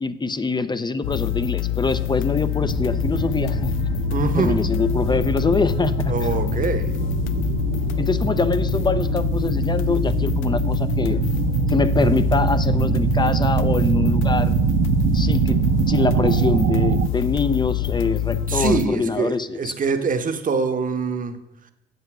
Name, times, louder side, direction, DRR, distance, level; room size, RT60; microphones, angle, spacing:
voice 1, 0.0-3.7 4.4-6.1 8.0-11.2 11.7-14.6 15.1-15.6 15.9-19.7, left 4 dB, 20° left, 0.6 m, -24 dB
sound 1, 1.0-18.9, left 11 dB, 85° left, 0.5 m, -25 dB
sound 2, 2.6-17.1, right 12 dB, 70° right, 0.4 m, -24 dB
voice 2, 4.1-4.6 6.1-7.0 18.5-21.4, right 4 dB, 45° right, 1.1 m, -24 dB
8.1 x 7.5 x 6.0 m
cardioid pair, 90°, 20 cm